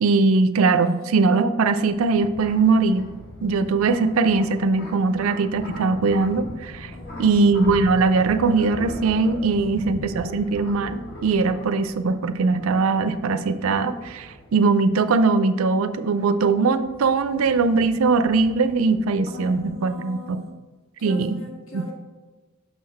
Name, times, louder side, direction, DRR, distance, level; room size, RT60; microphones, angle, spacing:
voice 1, 0.0-3.0 3.4-6.9 7.2-20.4 21.0-21.4 21.7-21.8, right 4 dB, 75° right, 11 dB, 0.4 m, -21 dB
sound 1, 1.6-19.7, left 1 dB, 45° left, 1.4 m, -40 dB
voice 2, 6.9-7.4 9.5-10.2 19.3-20.5 21.0-21.9, left 2 dB, 70° left, -2 dB, 1.8 m, -40 dB
5.9 x 5.7 x 4.2 m, 1.3 s
head